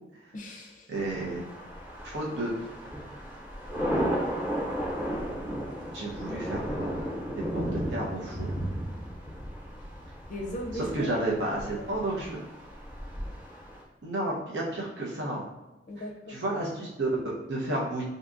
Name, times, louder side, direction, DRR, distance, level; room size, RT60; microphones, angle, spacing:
voice 1, 0.3-0.9 10.3-11.2 11.8-11.9 15.9-16.4, equal, 45° left, 1 dB, 0.5 m, -37 dB
sound 1, 0.9-13.8, equal, 15° right, 0.9 m, -34 dB
voice 2, 0.9-1.4 2.0-2.5 5.9-7.0 7.5-8.6 10.7-12.4 14.0-15.4 16.0-18.0, right 2 dB, 70° right, -4 dB, 0.7 m, -32 dB
3.8 x 2.7 x 2.4 m, 1.0 s
head